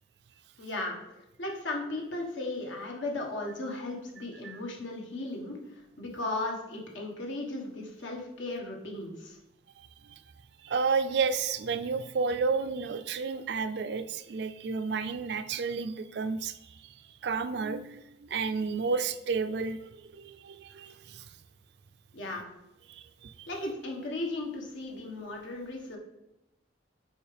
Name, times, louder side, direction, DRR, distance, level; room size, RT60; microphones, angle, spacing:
voice 1, 0.6-1.0 1.4-9.4 22.1-22.5 23.5-26.0, left 2 dB, 85° left, 0 dB, 1.4 m, -36 dB
voice 2, 10.6-16.9 17.2-21.2 22.9-23.5, right 5 dB, 60° right, 11 dB, 0.4 m, -31 dB
7.1 x 4.9 x 3.3 m, 0.92 s
head